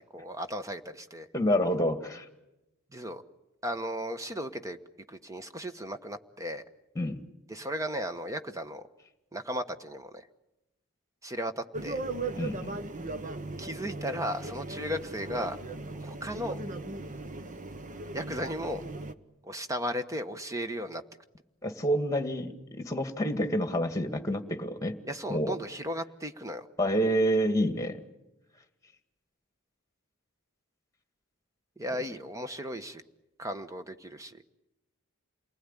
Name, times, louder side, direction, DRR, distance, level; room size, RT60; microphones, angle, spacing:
voice 1, 0.1-1.3 2.9-3.2 3.6-4.8 5.1-6.6 7.5-8.8 9.3-10.2 11.2-12.0 13.6-15.6 15.9-16.6 18.1-18.8 19.4-21.0 25.0-26.7 31.8-33.0 33.4-34.4, equal, 15° right, 9 dB, 1.2 m, -35 dB
voice 2, 1.3-2.3 7.0-7.2 12.4-12.8 21.6-25.0 25.3-25.6 26.8-28.0, equal, 15° left, 8 dB, 1.9 m, -28 dB
sound 1, 11.7-19.1, right 2 dB, 35° right, 1.0 m, -38 dB
28.5 x 20.0 x 9.9 m, 0.96 s
head